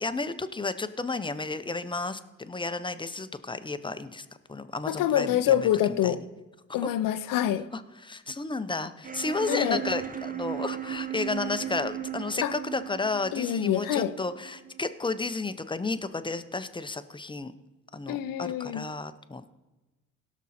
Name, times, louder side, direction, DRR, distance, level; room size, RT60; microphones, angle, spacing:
voice 1, 0.0-6.1 6.8-6.9 7.7-17.5 17.9-19.5, left 3 dB, 15° left, 0.7 m, -32 dB
voice 2, 4.9-6.2 6.7-7.7 9.5-9.8 12.4-12.5 13.3-14.1 18.1-18.9, left 11 dB, 85° left, 0.7 m, -26 dB
sound 1, 9.0-14.9, right 10 dB, 25° right, 0.8 m, -37 dB
17.0 x 6.2 x 4.3 m
cardioid pair, 75°, 32 cm